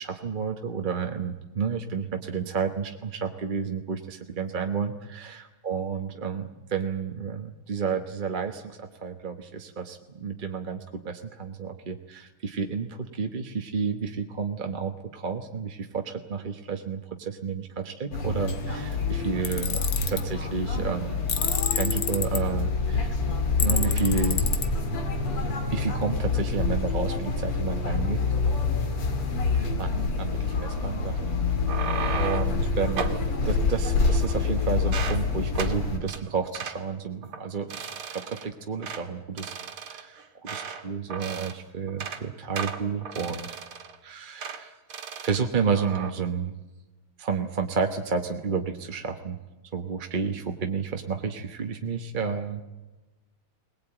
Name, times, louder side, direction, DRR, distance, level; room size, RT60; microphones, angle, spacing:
voice 1, 0.0-21.2 21.7-23.1 23.6-24.5 25.7-28.2 29.8-31.4 31.8-43.5 44.0-44.8 45.2-46.6 47.2-49.4 49.7-52.6, right 6 dB, 35° right, 5 dB, 0.9 m, -31 dB
sound 1, 18.1-36.0, left 4 dB, 85° left, 3.4 m, -27 dB
Tools, 19.5-20.2 21.3-22.4 23.6-24.7, left 8 dB, 60° left, 1.7 m, -28 dB
sound 2, 31.5-32.6 33.0-33.2 33.9-34.5 34.8-35.2 35.6-35.8 36.1-36.2 36.5-36.8 37.2-37.4 37.7-38.5 38.8-39.0 39.4-40.8 41.1-41.6 41.9-42.2 42.6-44.0 44.4-44.6 44.9-45.4 45.7-46.1, right 6 dB, 75° right, 2.5 m, -35 dB
21.5 x 19.5 x 9.0 m, 1.1 s
omnidirectional pair, 2.4 m